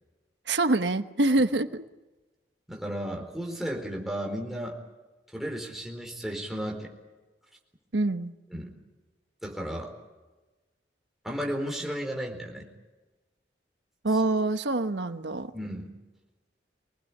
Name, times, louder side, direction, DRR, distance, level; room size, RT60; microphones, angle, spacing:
voice 1, 0.5-1.8 7.9-8.3 14.0-15.5, right 2 dB, 85° right, 9 dB, 1.2 m, -25 dB
voice 2, 2.7-4.8 5.3-6.9 8.5-8.7 9.4-9.9 11.2-12.7 15.5-16.0, equal, ahead, 0 dB, 4.4 m, -34 dB
25.5 x 19.5 x 8.6 m, 1.2 s
head